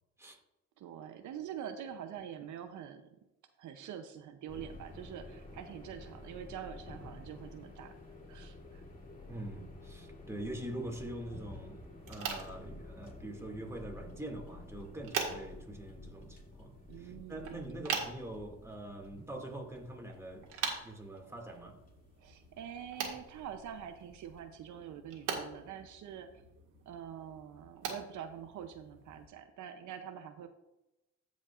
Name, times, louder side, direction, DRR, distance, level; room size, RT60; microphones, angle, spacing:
voice 1, 0.8-3.1 3.6-7.9 8.3-8.8 16.9-17.8 22.2-26.3 26.9-30.5, right 9 dB, 75° right, 0.7 m, -45 dB
sound 1, 4.5-24.4, left 2 dB, 30° left, 2.7 m, -51 dB
voice 2, 9.3-11.8 12.1-20.5 20.8-21.8, right 1 dB, 10° right, 2.2 m, -44 dB
sound 2, 12.0-29.3, right 6 dB, 90° right, 2.0 m, -44 dB
15.0 x 5.2 x 2.5 m
cardioid pair, 90°, 30 cm